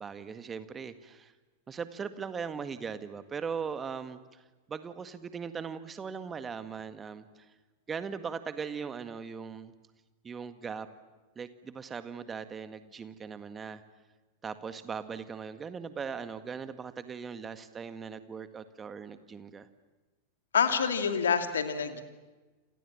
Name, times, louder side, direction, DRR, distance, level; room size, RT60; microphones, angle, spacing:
voice 1, 0.0-1.3 1.7-4.4 4.7-7.5 7.9-9.7 10.2-10.9 11.4-13.8 14.4-19.7, right 6 dB, 20° right, 11 dB, 1.8 m, -39 dB
voice 2, 20.5-22.0, left 6 dB, 65° left, 8 dB, 2.5 m, -27 dB
29.0 x 28.5 x 7.3 m, 1.2 s
figure-of-eight pair, 90°, 0 cm